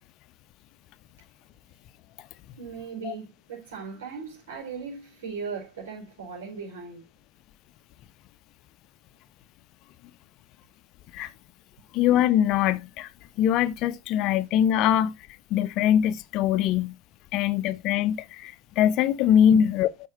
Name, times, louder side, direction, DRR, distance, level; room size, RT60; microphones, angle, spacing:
voice 1, 2.6-7.0 19.5-19.7, right 5 dB, 60° right, 4.5 m, -37 dB
voice 2, 11.9-13.1 13.4-15.1 15.5-16.9 17.3-20.1, left 10 dB, 40° left, 0.8 m, -22 dB
12.0 x 4.6 x 4.2 m
figure-of-eight pair, 90°, 0 cm